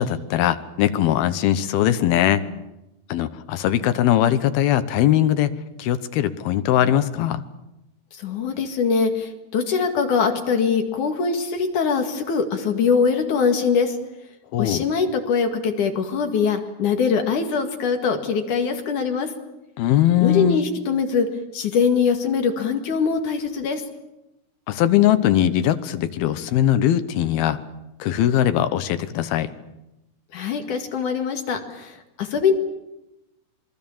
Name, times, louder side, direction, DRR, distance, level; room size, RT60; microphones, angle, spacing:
voice 1, 0.0-2.4 3.1-5.5 5.8-7.4 14.5-14.8 19.8-20.6 24.7-27.6 28.0-29.5, left 11 dB, 80° left, 11 dB, 2.9 m, -20 dB
voice 2, 8.1-14.0 14.6-19.3 20.2-21.3 21.5-23.8 30.3-32.5, left 5 dB, 55° left, 5 dB, 3.3 m, -22 dB
26.0 x 23.0 x 7.3 m, 0.92 s
omnidirectional pair, 4.5 m